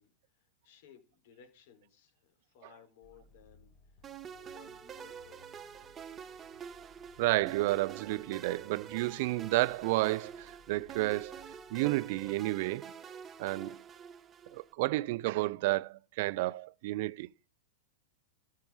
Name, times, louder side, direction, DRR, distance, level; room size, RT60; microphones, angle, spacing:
voice 1, 0.0-5.5, left 8 dB, 65° left, 4.0 m, -60 dB
sound 1, 3.0-12.6, left 2 dB, 35° left, 3.3 m, -63 dB
sound 2, 4.0-14.7, right 7 dB, 25° right, 1.1 m, -47 dB
voice 2, 7.2-12.9 13.4-13.8 14.5-17.3, right 19 dB, 60° right, 0.5 m, -31 dB
13.0 x 6.7 x 5.4 m
hypercardioid pair, 125°, 0 cm